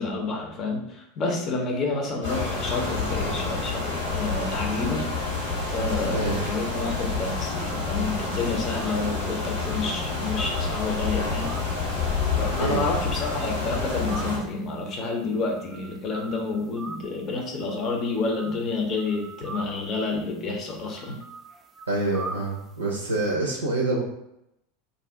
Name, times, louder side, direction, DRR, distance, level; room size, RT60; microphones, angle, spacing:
voice 1, 0.0-5.0 5.7-11.6 12.3-21.2, left 3 dB, 35° left, 1 dB, 0.7 m, -29 dB
sound 1, 2.2-14.4, left 4 dB, 75° left, 1.2 m, -28 dB
voice 2, 6.1-6.4 12.6-12.9 21.9-24.0, right 2 dB, 80° right, -1 dB, 0.5 m, -26 dB
sound 2, 7.5-23.3, right 3 dB, 15° right, 0.4 m, -43 dB
2.6 x 2.4 x 3.4 m, 0.84 s
figure-of-eight pair, 80°, 0 cm